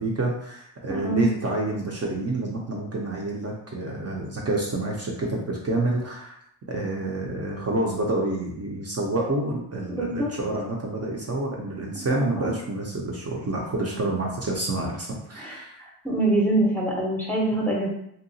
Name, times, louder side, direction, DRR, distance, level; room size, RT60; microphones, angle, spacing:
voice 1, 0.0-6.4 6.7-15.8, right 2 dB, 40° right, -2 dB, 0.5 m, -28 dB
voice 2, 0.9-1.3 9.9-10.3 12.1-12.5 15.3-17.9, right 2 dB, 5° left, -3 dB, 0.6 m, -25 dB
2.8 x 2.3 x 2.6 m, 0.72 s
wide cardioid pair, 130°, 38 cm